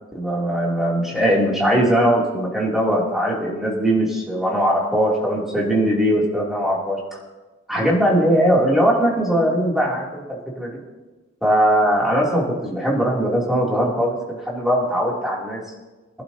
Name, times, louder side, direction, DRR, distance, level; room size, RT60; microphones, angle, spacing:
voice 1, 0.1-7.0 7.7-10.8 11.4-15.6, equal, ahead, -5 dB, 2.9 m, -20 dB
22.5 x 11.5 x 2.9 m, 1.2 s
head